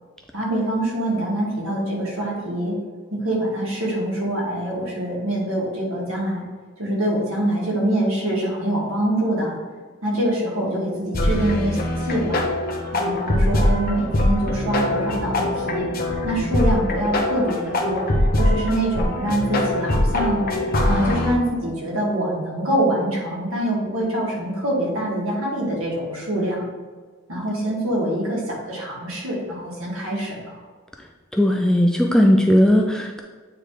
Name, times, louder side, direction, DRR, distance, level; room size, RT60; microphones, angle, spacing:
voice 1, 0.3-2.8 3.1-6.4 6.8-9.5 10.0-12.5 12.9-15.9 16.2-18.0 18.3-20.4 20.8-26.6 27.3-30.6, right 1 dB, 60° right, -4 dB, 2.2 m, -24 dB
sound 1, 11.1-21.3, left 1 dB, 40° left, 0.8 m, -22 dB
voice 2, 31.3-33.2, equal, 5° left, 1 dB, 0.4 m, -17 dB
8.7 x 3.4 x 4.9 m, 1.5 s
head